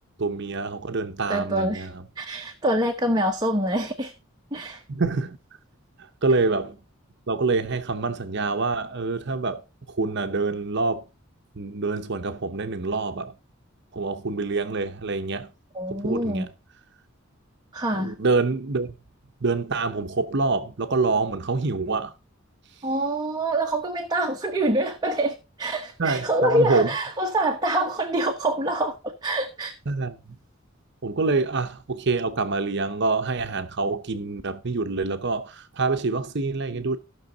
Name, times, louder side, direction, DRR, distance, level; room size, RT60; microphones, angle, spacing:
voice 1, 0.2-2.0 4.9-5.4 6.0-6.8 7.3-9.6 9.9-11.0 11.5-13.3 13.9-15.5 15.9-16.5 17.9-18.9 19.4-22.1 26.0-26.9 29.9-30.4 31.0-37.0, right 3 dB, 55° right, 0.8 m, -26 dB
voice 2, 1.3-1.9 2.2-4.1 4.5-4.8 15.7-16.5 17.7-18.1 22.8-29.7, right 1 dB, 20° right, 1.1 m, -25 dB
16.0 x 6.2 x 3.9 m
head